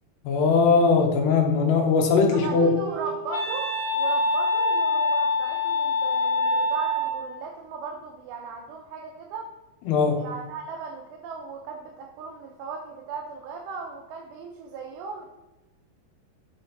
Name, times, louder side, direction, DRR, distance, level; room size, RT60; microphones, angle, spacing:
voice 1, 0.2-2.7 9.9-10.2, left 4 dB, 80° left, 2 dB, 3.0 m, -20 dB
Wind instrument woodwind instrument, 1.9-7.4, left 2 dB, 50° left, 2.0 m, -26 dB
voice 2, 2.3-9.5 10.1-15.3, right 5 dB, 85° right, 0 dB, 3.0 m, -37 dB
8.6 x 4.2 x 4.0 m, 0.98 s
omnidirectional pair, 4.8 m